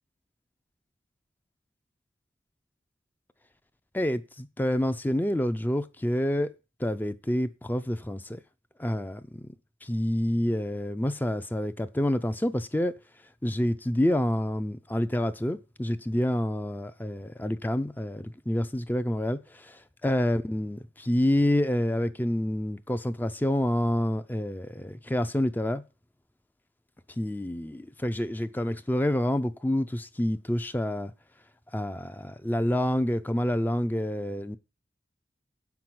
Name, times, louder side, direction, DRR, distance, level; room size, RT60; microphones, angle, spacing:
voice 1, 3.9-6.5 6.8-8.4 8.8-9.5 9.8-13.0 13.4-25.8 27.2-31.1 31.7-34.6, left 1 dB, 10° left, 0.4 m, -28 dB
7.9 x 6.0 x 7.6 m
head